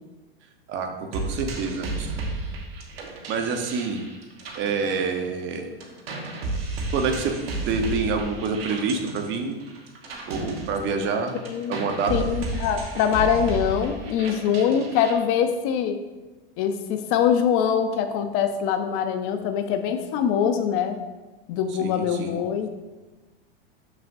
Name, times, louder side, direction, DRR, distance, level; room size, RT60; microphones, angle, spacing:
voice 1, 0.7-2.1 3.3-4.0 4.5-5.7 6.9-7.4 7.7-9.6 10.3-11.4 11.7-12.3 21.7-22.4, right 4 dB, 40° right, 5 dB, 1.0 m, -27 dB
sound 1, 1.1-5.5 5.8-15.1, right 2 dB, 80° right, 1.3 m, -33 dB
voice 2, 11.4-11.8 12.1-16.0 16.6-21.0 21.5-22.7, left 8 dB, 45° left, 8 dB, 0.7 m, -23 dB
6.7 x 6.3 x 2.6 m, 1.2 s
hypercardioid pair, 110°, 29 cm